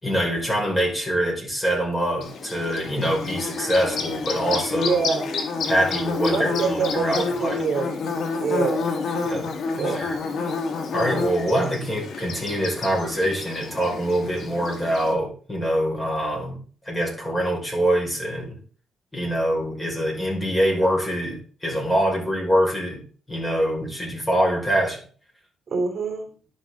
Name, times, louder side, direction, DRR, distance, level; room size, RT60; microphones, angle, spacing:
voice 1, 0.0-5.0 5.7-7.6 9.2-9.5 9.8-10.2 10.9-16.6 16.8-18.6 19.1-23.0 23.3-25.0, equal, 10° left, -1 dB, 5.4 m, -24 dB
Bird / Buzz, 2.2-15.1, left 4 dB, 65° left, 1.9 m, -29 dB
voice 2, 4.7-5.4 6.2-7.8 8.4-8.8 9.7-10.0 25.7-26.2, right 4 dB, 40° right, 1 dB, 3.3 m, -25 dB
11.0 x 7.3 x 3.9 m, 0.41 s
cardioid pair, 90°, 0 cm